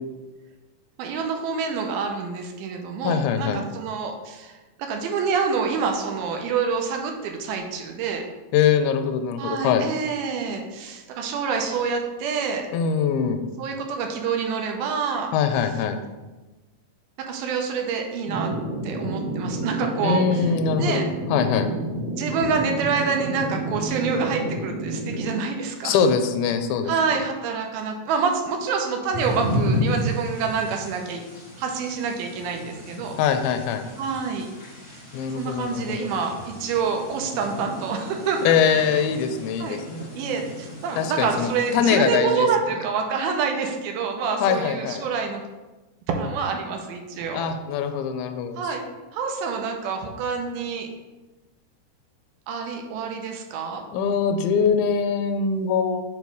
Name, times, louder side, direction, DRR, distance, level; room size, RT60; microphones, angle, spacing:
voice 1, 1.0-8.2 9.4-12.6 13.6-15.3 17.3-18.5 18.8-20.5 20.8-21.0 22.2-26.0 26.8-31.2 31.6-33.2 34.0-34.5 34.9-35.0 35.4-38.4 38.7-39.0 39.6-39.8 40.1-45.4 46.1-47.5 48.6-48.8 49.1-50.9 52.5-53.8, right 5 dB, 80° right, 3 dB, 2.6 m, -27 dB
voice 2, 3.0-3.6 8.5-9.8 12.7-13.4 15.3-16.0 20.0-21.1 21.3-21.7 25.8-26.9 33.2-33.8 35.1-36.1 38.4-40.0 41.0-42.5 44.4-45.1 47.3-48.7 53.9-56.0, left 7 dB, 80° left, 7 dB, 2.4 m, -23 dB
sound 1, 18.2-25.3, right 2 dB, 60° right, 2.1 m, -30 dB
sound 2, 29.1-41.7, left 1 dB, 30° left, 0.9 m, -33 dB
7.1 x 3.2 x 5.3 m, 1.1 s
omnidirectional pair, 4.4 m